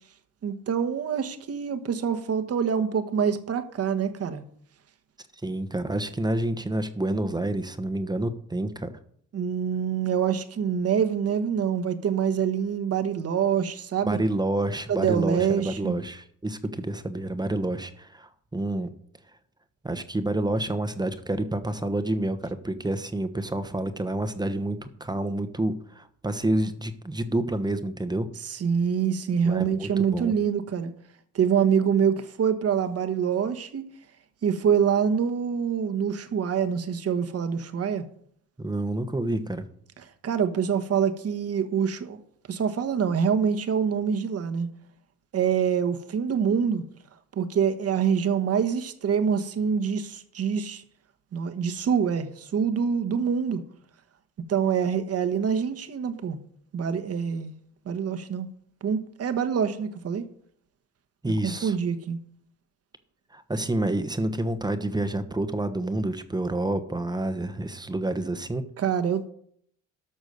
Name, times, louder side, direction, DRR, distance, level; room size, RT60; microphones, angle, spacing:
voice 1, 0.4-4.4 9.3-14.2 14.9-16.0 28.4-30.9 31.3-33.9 34.4-38.1 40.2-42.2 42.5-44.7 45.3-46.8 47.3-50.8 51.3-53.6 54.5-56.4 56.7-57.5 57.8-58.5 58.8-60.2 61.4-62.2 68.8-69.3, right 7 dB, 50° right, 1.3 m, -25 dB
voice 2, 5.4-8.9 14.1-18.9 19.8-28.3 29.4-30.3 38.6-39.6 61.2-61.7 63.3-68.6, right 1 dB, 15° right, 1.1 m, -28 dB
12.0 x 6.2 x 6.5 m
cardioid pair, 85°, 32 cm